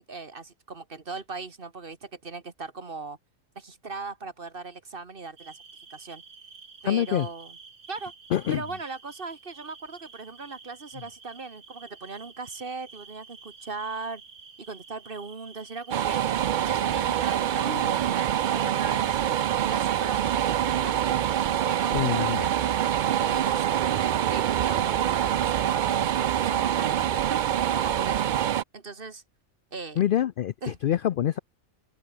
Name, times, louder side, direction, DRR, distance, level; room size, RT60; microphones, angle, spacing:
voice 1, 0.0-3.2 3.6-5.6 5.9-6.2 6.8-7.6 7.9-8.1 8.5-14.2 14.6-16.2 16.6-17.7 18.2-19.2 19.6-20.9 21.6-23.8 24.3-28.2 28.7-29.2 29.7-30.0 30.6-30.8, right 4 dB, 40° right, 1.9 m, -39 dB
sound 1, 5.4-21.6, right 5 dB, 70° right, 2.6 m, -50 dB
voice 2, 6.9-7.3 8.3-8.6 21.9-22.5 30.0-31.4, left 11 dB, 75° left, 0.4 m, -25 dB
sound 2, 15.9-28.6, right 10 dB, 85° right, 0.4 m, -25 dB
sound 3, 17.7-18.7, left 3 dB, 55° left, 3.0 m, -43 dB
omnidirectional pair, 1.4 m